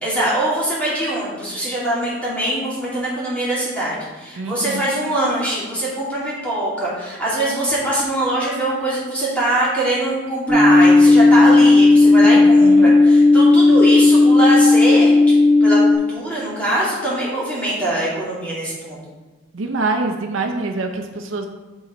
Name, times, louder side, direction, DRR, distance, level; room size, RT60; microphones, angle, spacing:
voice 1, 0.0-15.2 15.4-19.0, right 1 dB, 5° left, -8 dB, 2.3 m, -22 dB
voice 2, 4.4-4.9 12.6-12.9 19.5-21.5, right 3 dB, 70° right, 4 dB, 0.6 m, -25 dB
sound 1, 10.5-15.9, left 2 dB, 20° left, 1.2 m, -12 dB
8.9 x 3.9 x 4.4 m, 1.2 s
head